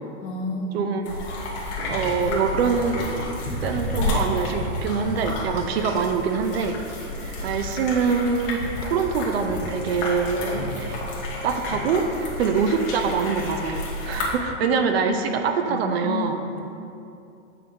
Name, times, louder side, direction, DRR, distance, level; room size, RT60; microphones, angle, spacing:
voice 1, 0.2-0.9 15.1-15.2 15.7-16.6, left 3 dB, 30° left, 1 dB, 0.5 m, -30 dB
voice 2, 0.7-1.1 1.9-6.8 7.1-11.0 11.4-16.4, right 5 dB, 55° right, 6 dB, 0.6 m, -24 dB
sound 1, 1.1-14.3, left 1 dB, 45° left, 1.6 m, -31 dB
Wind instrument woodwind instrument, 8.2-13.3, left 5 dB, 15° left, 1.5 m, -46 dB
8.9 x 5.8 x 2.7 m, 2.6 s
supercardioid pair, 155°, 38 cm